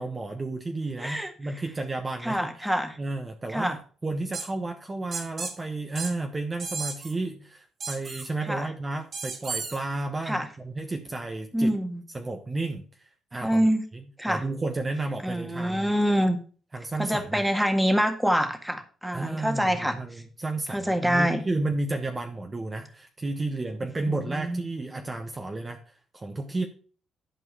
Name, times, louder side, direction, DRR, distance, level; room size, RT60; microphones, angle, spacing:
voice 1, 0.0-2.7 3.0-11.8 12.1-13.6 13.9-15.9 16.7-17.4 19.1-26.7, right 2 dB, 25° right, 4 dB, 1.1 m, -32 dB
voice 2, 1.0-1.3 2.2-3.0 3.5-3.8 8.5-8.7 10.3-10.5 11.5-12.0 13.4-13.8 14.2-14.4 15.2-16.4 17.0-20.0 20.7-21.4 24.1-24.6, equal, 5° right, 6 dB, 1.7 m, -25 dB
sound 1, 4.3-4.5 5.1-5.5 6.0-6.1 6.6-7.1 7.8-8.3 9.1-9.8, right 4 dB, 55° right, 2.7 m, -33 dB
11.5 x 4.5 x 5.5 m, 0.39 s
cardioid pair, 90°, 0 cm